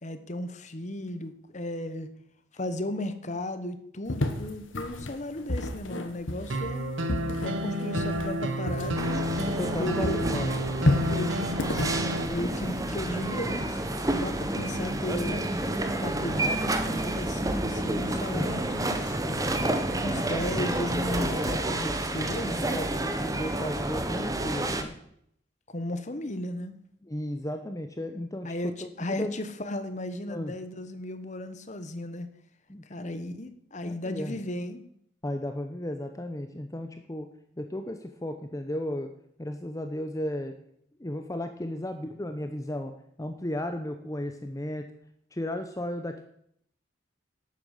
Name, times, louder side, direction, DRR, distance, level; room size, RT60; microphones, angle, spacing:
voice 1, 0.0-2.1 2.5-6.9 7.4-9.3 9.8-10.2 11.1-15.4 16.0-19.2 20.0-22.8 25.7-26.8 28.4-32.3 32.9-34.8, left 1 dB, 40° left, 10 dB, 1.1 m, -35 dB
sound 1, 4.1-9.8 10.0-12.9, left 1 dB, 90° left, 1.5 m, -31 dB
sound 2, 6.5-12.3, equal, 80° right, 1.3 m, -30 dB
sound 3, 9.0-24.8, right 1 dB, 20° right, 1.0 m, -30 dB
voice 2, 9.6-10.5 22.5-25.0 27.0-29.3 30.3-30.5 32.7-33.3 33.8-34.4 35.2-37.3 37.6-39.1 39.4-40.5 41.0-42.9 43.2-44.8 45.3-46.2, left 1 dB, 15° left, 7 dB, 0.7 m, -34 dB
12.0 x 8.6 x 6.6 m, 0.69 s
head